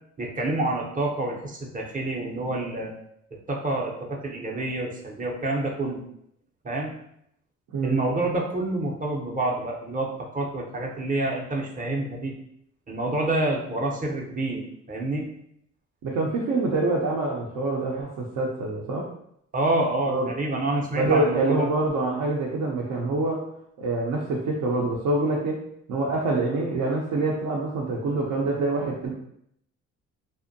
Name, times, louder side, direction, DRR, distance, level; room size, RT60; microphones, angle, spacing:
voice 1, 0.2-2.9 3.5-6.0 6.6-6.9 7.8-12.3 12.9-14.6 14.9-15.3 19.5-21.7, right 2 dB, 25° right, -1 dB, 0.6 m, -27 dB
voice 2, 16.0-19.1 20.1-20.3 20.9-23.4 23.8-25.6 25.9-29.1, right 2 dB, 75° right, -3 dB, 0.6 m, -25 dB
2.6 x 2.1 x 2.5 m, 0.73 s
cardioid pair, 90°, 30 cm